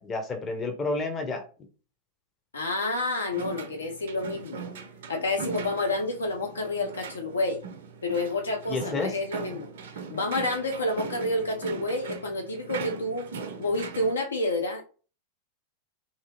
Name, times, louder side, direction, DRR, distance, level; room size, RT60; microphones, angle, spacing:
voice 1, 0.0-1.4 8.7-9.1, left 3 dB, 25° left, 5 dB, 0.7 m, -30 dB
voice 2, 2.5-4.7 5.1-7.6 8.0-9.7 9.9-13.2 13.6-14.8, left 2 dB, 70° left, 4 dB, 0.5 m, -29 dB
sound 1, 3.3-14.1, right 5 dB, 60° right, 0.4 m, -40 dB
2.7 x 2.4 x 2.9 m, 0.36 s
figure-of-eight pair, 90°, 0 cm